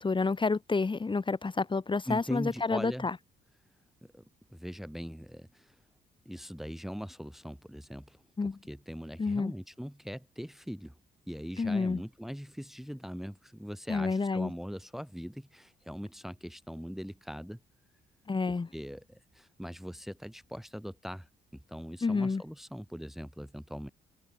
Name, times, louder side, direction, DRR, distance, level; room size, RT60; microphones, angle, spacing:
voice 1, 0.0-3.2 8.4-8.6 9.2-9.5 11.6-12.0 13.9-14.5 18.3-18.7 22.0-22.4, left 4 dB, 25° left, 1.5 m, -29 dB
voice 2, 2.1-3.1 4.0-4.2 4.5-5.7 6.2-10.9 11.3-17.6 18.7-21.3 21.5-23.9, equal, ahead, 1.5 m, -41 dB
cardioid pair, 90°, 20 cm